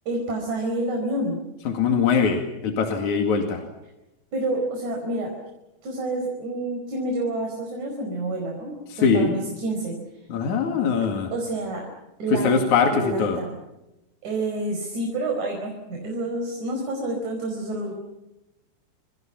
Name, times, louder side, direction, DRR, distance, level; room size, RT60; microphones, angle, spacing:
voice 1, 0.1-1.4 4.3-5.3 5.8-10.0 11.3-11.8 12.2-13.6 14.2-17.9, right 2 dB, 75° right, 2 dB, 6.4 m, -28 dB
voice 2, 1.7-3.6 9.0-9.3 10.3-11.3 12.3-13.4, left 5 dB, 75° left, 4 dB, 3.7 m, -22 dB
29.0 x 27.0 x 6.0 m, 0.94 s
omnidirectional pair, 3.4 m